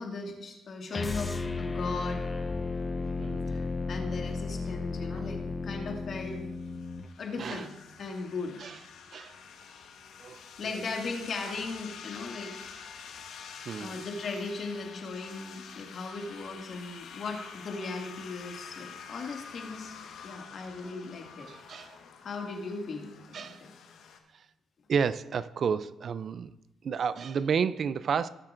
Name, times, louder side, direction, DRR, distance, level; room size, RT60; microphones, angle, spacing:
voice 1, 0.0-2.3 3.5-6.4 7.2-7.7 8.0-8.6 10.6-12.5 13.3-13.4 13.8-20.0 20.2-21.5 22.2-23.7, left 3 dB, 55° left, 1 dB, 2.0 m, -37 dB
sound 1, 0.9-7.1, left 3 dB, 25° left, 0.6 m, -34 dB
voice 2, 3.2-3.5 5.1-5.2 7.4-7.7 8.6-8.8 9.1-9.4 10.2-10.8 13.7-14.0 21.4-22.0 23.3-23.6 24.3-24.5 24.9-26.5 26.8-28.3, right 6 dB, 55° right, 16 dB, 0.4 m, -31 dB
sound 2, 6.3-24.2, left 6 dB, 80° left, 1.3 m, -47 dB
19.0 x 7.4 x 2.5 m, 0.95 s
cardioid pair, 90°, 0 cm